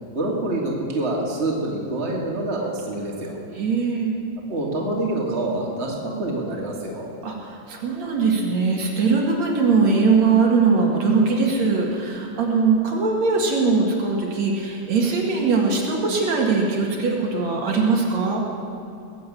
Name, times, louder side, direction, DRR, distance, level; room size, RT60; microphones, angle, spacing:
voice 1, 0.1-3.4 4.5-7.1, right 2 dB, 25° right, -2 dB, 2.4 m, -26 dB
voice 2, 3.5-4.2 7.2-18.4, right 4 dB, 70° right, -1 dB, 3.1 m, -21 dB
20.5 x 7.7 x 8.7 m, 2.5 s
omnidirectional pair, 3.4 m